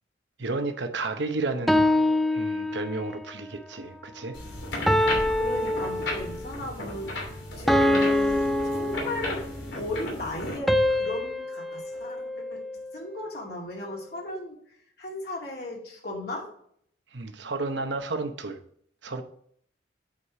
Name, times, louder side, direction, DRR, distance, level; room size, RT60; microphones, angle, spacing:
voice 1, 0.4-4.4 6.6-6.7 17.1-18.6 19.0-19.2, right 3 dB, 75° right, 7 dB, 0.9 m, -32 dB
sound 1, 1.7-3.2 4.9-6.5 7.7-9.6 10.7-13.0, left 1 dB, ahead, 0.4 m, -25 dB
sound 2, 4.3-10.6, left 1 dB, 85° left, 2.9 m, -35 dB
voice 2, 5.3-9.5 9.7-12.6 12.9-14.6 15.0-16.5, left 2 dB, 60° left, -2 dB, 2.5 m, -36 dB
8.3 x 4.9 x 4.8 m, 0.64 s
head